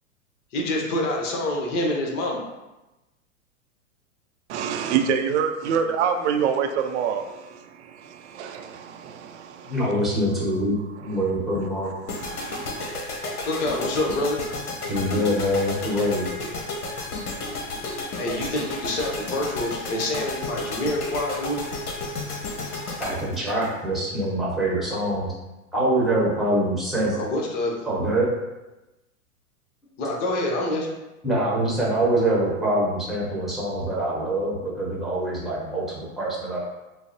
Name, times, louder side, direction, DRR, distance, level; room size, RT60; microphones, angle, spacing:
voice 1, 0.5-2.4 13.4-14.4 18.2-21.6 27.2-27.8 30.0-30.9, left 1 dB, 55° left, 0 dB, 1.0 m, -26 dB
voice 2, 4.5-9.8 12.2-12.9, right 7 dB, 50° right, 5 dB, 0.5 m, -26 dB
voice 3, 9.7-11.9 14.9-16.3 23.0-25.3 25.7-27.2 27.8-28.3 31.2-36.6, right 1 dB, ahead, -5 dB, 0.9 m, -24 dB
sound 1, 12.1-24.3, left 2 dB, 85° left, 0.9 m, -32 dB
4.7 x 2.0 x 2.9 m, 1.0 s
hypercardioid pair, 110°, 44 cm